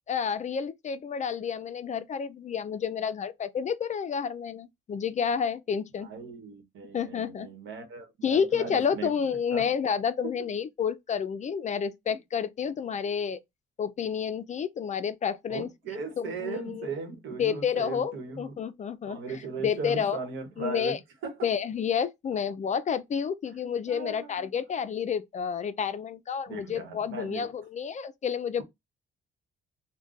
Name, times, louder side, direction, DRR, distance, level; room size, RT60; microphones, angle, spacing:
voice 1, 0.0-6.1 6.9-7.5 8.2-13.4 13.8-15.7 16.2-16.9 17.4-20.2 20.6-21.0 21.4-28.6, left 7 dB, 35° left, 0.4 m, -30 dB
voice 2, 6.0-9.1 9.5-9.7 10.2-10.3 15.5-18.5 19.0-21.0 21.2-21.5 23.9-24.5 26.5-27.5, right 4 dB, 80° right, 1.0 m, -38 dB
2.4 x 2.2 x 3.9 m
cardioid pair, 90°, 20 cm